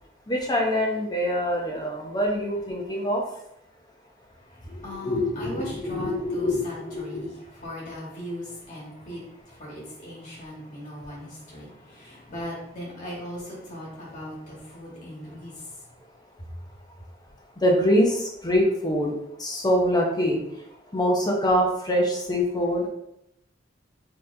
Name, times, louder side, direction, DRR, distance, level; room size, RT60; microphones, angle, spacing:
voice 1, 0.3-3.2 4.7-7.3 17.6-19.1 19.4-20.4 20.9-22.9, equal, 20° left, -1 dB, 0.7 m, -24 dB
voice 2, 4.4-15.8, equal, 45° left, -5 dB, 1.5 m, -39 dB
4.0 x 2.9 x 2.6 m, 0.78 s
head